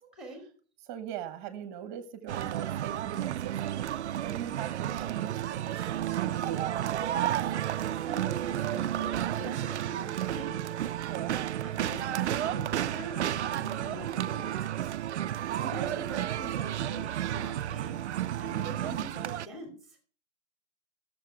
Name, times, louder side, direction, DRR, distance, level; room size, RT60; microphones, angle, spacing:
voice 1, 0.0-0.4 8.0-10.8 11.6-14.9 15.2-18.0 18.4-20.0, right 1 dB, ahead, 3 dB, 2.5 m, -44 dB
voice 2, 0.9-3.9 4.2-7.3 11.1-11.5 15.6-15.9 18.5-19.1, right 10 dB, 25° right, 10 dB, 1.4 m, -41 dB
sound 1, 2.3-19.5, right 11 dB, 85° right, 0.5 m, -32 dB
13.5 x 6.9 x 4.8 m, 0.42 s
hypercardioid pair, 155°, 33 cm